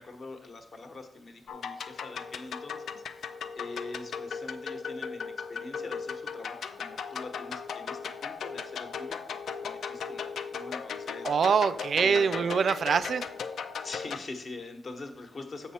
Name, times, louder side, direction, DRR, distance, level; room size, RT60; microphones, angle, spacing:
voice 1, 0.0-11.3 12.0-12.6 13.8-15.7, left 3 dB, 45° left, 6 dB, 1.0 m, -44 dB
sound 1, 1.5-14.2, left 6 dB, 85° left, 0.5 m, -37 dB
voice 2, 11.2-13.3, right 6 dB, 55° right, 15 dB, 0.3 m, -24 dB
7.3 x 5.6 x 4.2 m, 0.73 s
wide cardioid pair, 160°, 0 cm